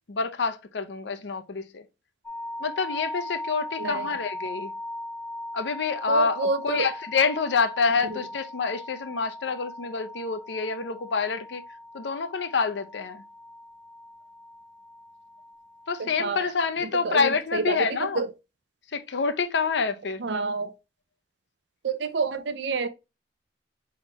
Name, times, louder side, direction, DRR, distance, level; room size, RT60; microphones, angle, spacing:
voice 1, 0.1-1.8 2.6-4.7 5.5-11.6 11.9-13.2 15.9-18.2 18.9-20.2, left 5 dB, 65° left, 0.6 m, -27 dB
sound 1, 2.2-16.3, left 1 dB, 10° left, 0.5 m, -39 dB
voice 2, 3.8-4.1 6.1-6.9 8.1-8.2 16.0-16.4 17.0-18.3 20.2-20.7 21.8-22.9, right 4 dB, 65° right, 0.6 m, -28 dB
4.7 x 3.6 x 3.0 m
head